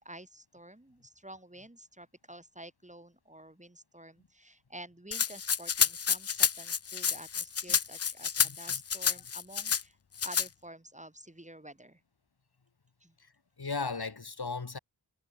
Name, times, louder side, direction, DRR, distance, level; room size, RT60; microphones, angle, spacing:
voice 1, 0.0-10.0 10.2-12.0 13.0-13.2, right 1 dB, 15° right, 4.2 m, -50 dB
Rattle (instrument), 5.1-9.8 10.2-10.5, left 7 dB, 40° left, 0.5 m, -29 dB
voice 2, 8.4-8.8 13.6-14.8, left 4 dB, 65° left, 4.3 m, -36 dB
wide cardioid pair, 55°, 41 cm